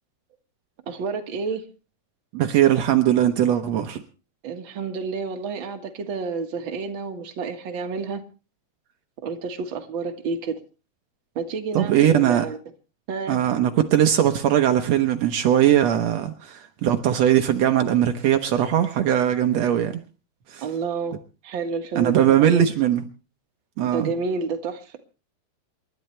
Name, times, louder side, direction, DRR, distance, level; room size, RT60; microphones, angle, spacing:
voice 1, 0.9-1.6 4.4-8.2 9.2-10.6 11.3-12.6 13.1-13.4 20.6-21.2 21.4-22.7 23.8-25.0, right 5 dB, 50° right, 1.4 m, -30 dB
voice 2, 2.3-4.0 11.7-12.4 13.3-20.0 20.5-20.6 21.9-23.0 23.8-24.1, right 10 dB, 90° right, 1.4 m, -20 dB
28.0 x 12.0 x 3.3 m
omnidirectional pair, 4.5 m